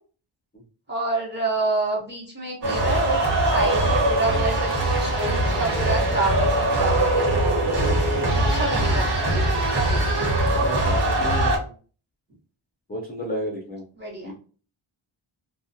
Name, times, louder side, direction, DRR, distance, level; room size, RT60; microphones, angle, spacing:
voice 1, 0.9-4.7 5.0-7.6 8.5-9.4 9.7-10.2 14.0-14.3, right 2 dB, 20° right, -3 dB, 0.9 m, -28 dB
sound 1, 2.6-11.6, right 1 dB, 50° right, 1.1 m, -22 dB
voice 2, 10.5-11.7 12.9-13.9 14.2-14.3, equal, 20° left, -2 dB, 0.4 m, -32 dB
2.2 x 2.2 x 2.6 m, 0.40 s
wide cardioid pair, 150°, 50 cm